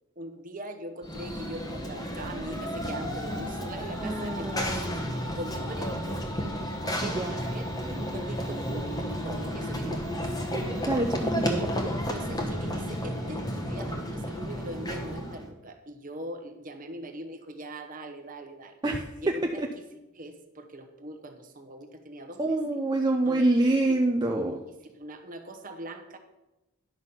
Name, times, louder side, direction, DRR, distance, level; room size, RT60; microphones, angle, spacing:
voice 1, 0.2-4.9 5.3-6.5 7.0-7.7 8.0-10.2 11.4-11.7 12.1-18.7 19.2-19.6 20.1-22.6 23.2-24.0 25.0-26.2, right 1 dB, 35° right, 6 dB, 1.0 m, -41 dB
Run / Train, 1.0-15.5, equal, 15° left, 1.0 m, -32 dB
voice 2, 4.0-5.2 7.0-7.4 10.9-11.6 18.8-19.1 19.6-19.7 22.4-24.6, right 2 dB, 20° right, 2 dB, 0.5 m, -26 dB
10.5 x 6.2 x 5.5 m, 0.99 s
head